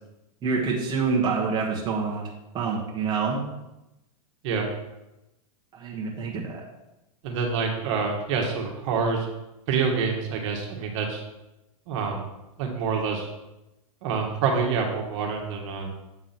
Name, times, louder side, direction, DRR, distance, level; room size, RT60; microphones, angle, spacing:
voice 1, 0.4-2.2 2.5-3.4 5.7-6.6, right 5 dB, 20° right, -3 dB, 1.3 m, -26 dB
voice 2, 7.2-9.3 9.7-11.2 11.9-12.2 12.6-13.3 14.0-15.9, right 5 dB, 55° right, 1 dB, 1.6 m, -27 dB
7.9 x 3.7 x 5.8 m, 0.94 s
supercardioid pair, 145°, 19 cm